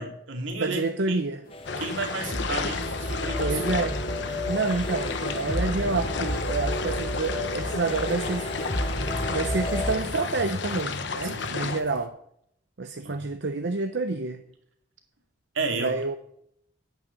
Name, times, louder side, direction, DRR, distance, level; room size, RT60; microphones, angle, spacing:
voice 1, 0.0-0.8 1.1-1.2 1.8-3.6 11.2-11.6 13.0-13.3 15.5-15.9, right 3 dB, 80° right, 2.4 m, -32 dB
voice 2, 0.6-1.4 3.4-4.0 4.5-8.7 9.3-12.1 12.8-14.4 15.7-16.2, right 3 dB, 65° right, 0.7 m, -28 dB
sound 1, 1.4-12.1, left 2 dB, 45° left, 1.4 m, -50 dB
sound 2, 1.5-10.0, left 1 dB, 30° left, 1.2 m, -31 dB
sound 3, 1.6-11.8, left 4 dB, 65° left, 1.1 m, -33 dB
10.0 x 9.2 x 6.6 m
head